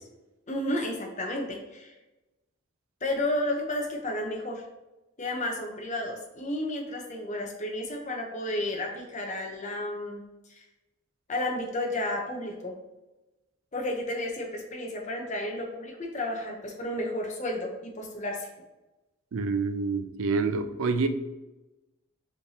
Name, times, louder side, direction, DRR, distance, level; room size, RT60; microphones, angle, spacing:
voice 1, 0.5-1.9 3.0-4.6 5.2-10.2 10.5-10.6 11.3-12.7 13.7-18.5, left 1 dB, 35° left, 1 dB, 0.8 m, -32 dB
voice 2, 19.3-21.1, right 4 dB, 80° right, 9 dB, 0.4 m, -27 dB
5.0 x 3.4 x 2.8 m, 1.0 s
head